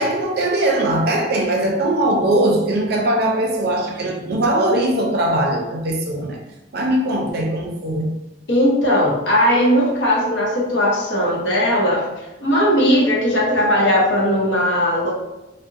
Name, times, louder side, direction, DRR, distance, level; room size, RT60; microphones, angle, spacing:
voice 1, 0.0-6.4 6.7-8.1, right 1 dB, 55° right, 0 dB, 0.5 m, -20 dB
voice 2, 8.5-12.1 12.4-15.1, equal, 70° left, -3 dB, 0.8 m, -18 dB
2.8 x 2.1 x 2.4 m, 0.99 s
head